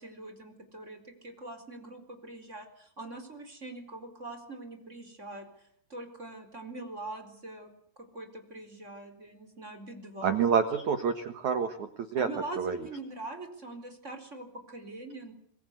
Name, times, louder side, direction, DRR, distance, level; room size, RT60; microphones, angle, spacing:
voice 1, 0.0-5.5 5.9-7.7 8.0-10.4 12.2-15.3, right 2 dB, 15° right, 6 dB, 3.7 m, -43 dB
voice 2, 10.2-12.3 12.6-12.8, right 6 dB, 75° right, 9 dB, 1.7 m, -28 dB
26.5 x 21.5 x 8.3 m, 0.67 s
omnidirectional pair, 5.8 m